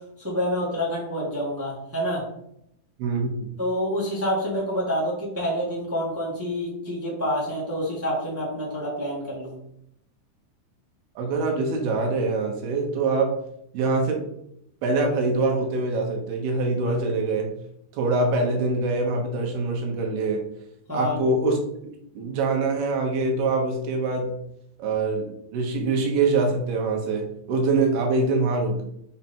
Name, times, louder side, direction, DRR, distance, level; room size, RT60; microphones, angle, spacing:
voice 1, 0.2-2.2 3.6-9.5 20.9-21.2, equal, 15° right, -6 dB, 0.4 m, -27 dB
voice 2, 3.0-3.5 11.2-13.3 13.7-14.2 14.8-17.5 17.9-20.4 20.9-24.3 24.8-28.8, right 3 dB, 80° right, 1 dB, 3.1 m, -24 dB
6.8 x 3.5 x 4.4 m, 0.75 s
omnidirectional pair, 4.5 m